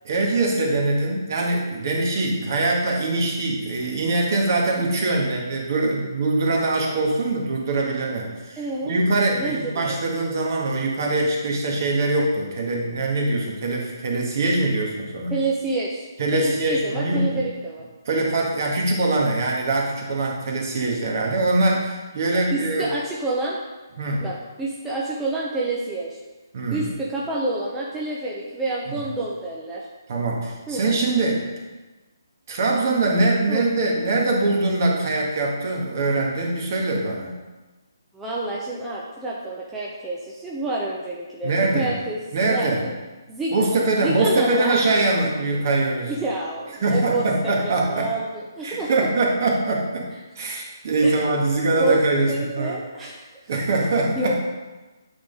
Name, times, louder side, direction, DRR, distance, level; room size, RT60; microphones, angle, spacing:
voice 1, 0.0-15.3 16.2-17.3 18.0-22.9 24.0-24.2 26.5-26.8 28.9-29.0 30.1-31.5 32.5-37.3 41.4-42.0 42.3-42.9 43.5-46.1 46.8-48.1 48.6-50.1 50.3-52.8 53.5-54.4, right 2 dB, 45° right, -1 dB, 1.6 m, -23 dB
voice 2, 8.6-9.0 9.4-10.0 15.3-16.0 16.3-17.9 22.5-23.6 24.2-26.2 26.7-29.8 30.7-30.9 33.5-33.6 38.1-42.9 43.3-43.5 44.0-44.8 46.1-49.0 51.0-51.3 51.8-53.3 54.2-54.4, right 2 dB, 10° right, -5 dB, 0.7 m, -28 dB
8.5 x 3.8 x 4.0 m, 1.2 s
figure-of-eight pair, 150°, 2 cm